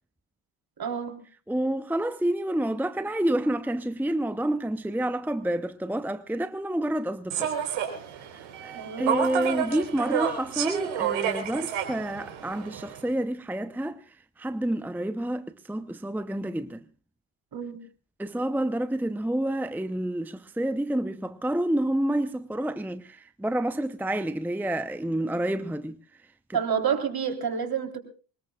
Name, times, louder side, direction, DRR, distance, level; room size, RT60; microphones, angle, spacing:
voice 1, 0.8-1.2 8.7-9.1 17.5-17.8 26.5-28.0, right 7 dB, 50° right, 3.8 m, -29 dB
voice 2, 1.5-7.5 8.2-16.8 18.2-26.0 26.5-26.6, right 1 dB, 5° right, 0.8 m, -29 dB
Human voice / Subway metro underground, 7.3-13.0, right 8 dB, 80° right, 4.1 m, -30 dB
24.0 x 20.0 x 2.4 m
hypercardioid pair, 50°, 48 cm